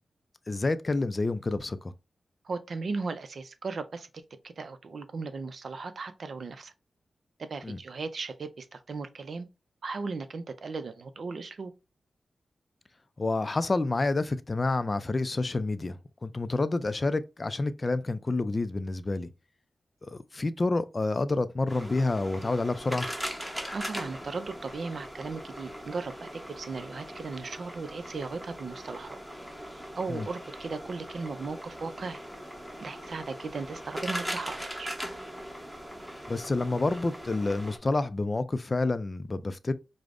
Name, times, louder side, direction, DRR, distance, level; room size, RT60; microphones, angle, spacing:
voice 1, 0.5-1.9 7.6-7.8 13.2-19.3 20.0-23.1 30.1-30.3 36.3-39.7, left 2 dB, 35° left, 0.3 m, -29 dB
voice 2, 2.4-4.1 4.4-6.7 7.4-9.5 9.8-11.7 23.7-29.2 30.0-32.2 32.8-35.0, right 4 dB, 65° right, 0.4 m, -37 dB
sound 1, 21.7-37.8, equal, 5° right, 0.9 m, -40 dB
4.9 x 2.0 x 2.4 m
cardioid pair, 70°, 0 cm